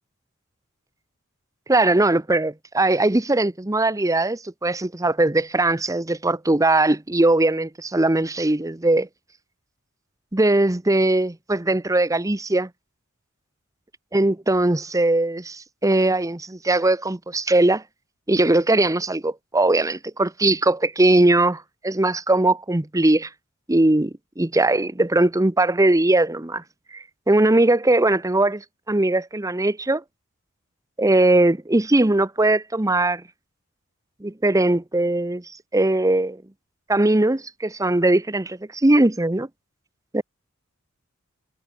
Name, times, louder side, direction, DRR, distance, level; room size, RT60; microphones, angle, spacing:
voice 1, 1.7-9.1 10.3-12.7 14.1-17.8 18.3-23.3 23.7-26.6 26.9-28.6 28.9-30.0 31.0-33.2 34.2-35.4 35.7-36.4 36.9-39.5 40.1-40.2, right 2 dB, 15° right, 0.8 m, -20 dB
head